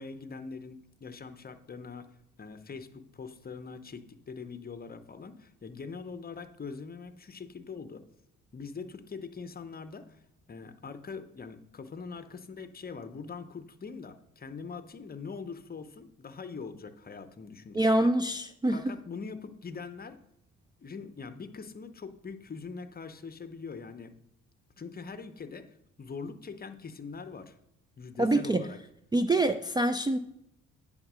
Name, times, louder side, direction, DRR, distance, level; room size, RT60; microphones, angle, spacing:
voice 1, 0.0-2.1 2.4-8.0 8.5-10.2 10.5-18.1 18.7-20.2 20.8-24.1 24.8-27.6 28.0-28.8, left 5 dB, 30° left, 10 dB, 0.7 m, -43 dB
voice 2, 17.7-18.9 28.2-28.7 29.1-30.2, right 1 dB, 15° right, 9 dB, 0.4 m, -25 dB
9.1 x 3.6 x 6.1 m, 0.81 s
cardioid pair, 90°, 30 cm